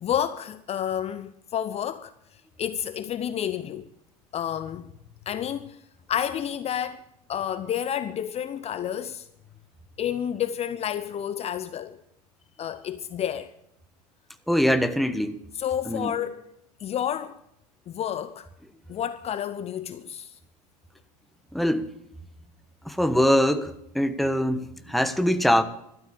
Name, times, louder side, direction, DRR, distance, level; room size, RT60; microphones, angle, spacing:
voice 1, 0.0-3.9 4.3-4.9 5.3-5.8 6.1-7.0 7.3-9.3 10.0-12.0 12.6-13.5 15.5-16.5 16.8-17.4 17.9-18.5 18.9-20.4, left 9 dB, 30° left, 0.8 m, -30 dB
voice 2, 14.5-15.4 15.9-16.1 21.5-21.9 22.8-25.6, equal, ahead, 1.2 m, -23 dB
13.5 x 12.5 x 6.9 m
hypercardioid pair, 90°, 20 cm